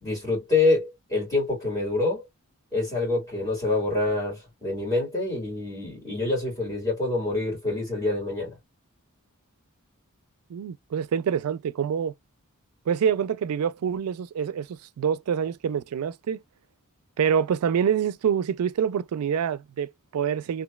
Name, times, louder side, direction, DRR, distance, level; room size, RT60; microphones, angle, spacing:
voice 1, 0.0-2.3 2.7-8.6, left 2 dB, 20° left, 1.9 m, -26 dB
voice 2, 10.5-12.1 12.9-16.4 17.2-20.6, right 7 dB, 80° right, 0.4 m, -26 dB
3.0 x 2.5 x 2.2 m
head